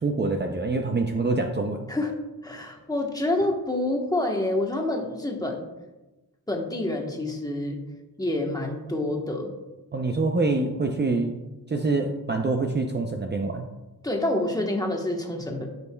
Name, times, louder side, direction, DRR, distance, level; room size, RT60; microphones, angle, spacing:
voice 1, 0.0-1.9 9.9-11.4 11.7-13.7, right 3 dB, 30° right, 3 dB, 0.6 m, -25 dB
voice 2, 2.4-5.7 6.5-7.8 8.2-9.5 14.0-15.7, left 1 dB, 10° left, 1 dB, 1.2 m, -27 dB
14.0 x 5.4 x 2.3 m, 1.1 s
wide cardioid pair, 110°, 36 cm